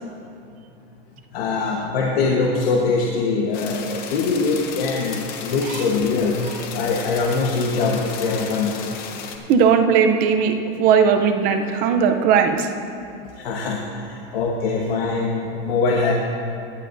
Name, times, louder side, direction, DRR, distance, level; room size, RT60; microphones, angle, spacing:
voice 1, 1.3-6.4 6.7-9.0 13.2-16.1, left 4 dB, 85° left, -1 dB, 1.3 m, -23 dB
sound 1, 3.5-9.4, left 7 dB, 30° left, 0.7 m, -34 dB
voice 2, 9.5-12.7, right 6 dB, 30° right, 6 dB, 0.6 m, -18 dB
17.0 x 11.5 x 2.6 m, 2.6 s
supercardioid pair, 175°, 29 cm